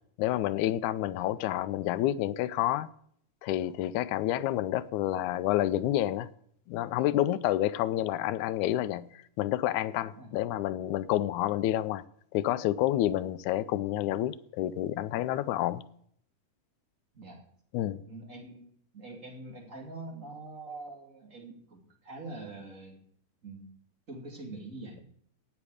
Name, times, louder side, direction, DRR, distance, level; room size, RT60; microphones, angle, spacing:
voice 1, 0.2-2.9 3.4-6.3 6.7-12.0 12.3-15.8 17.7-18.0, left 13 dB, 80° left, 1.9 m, -29 dB
voice 2, 17.9-23.0 23.4-23.7 24.1-25.0, right 2 dB, 25° right, 2.7 m, -44 dB
17.5 x 8.0 x 4.9 m
omnidirectional pair, 3.7 m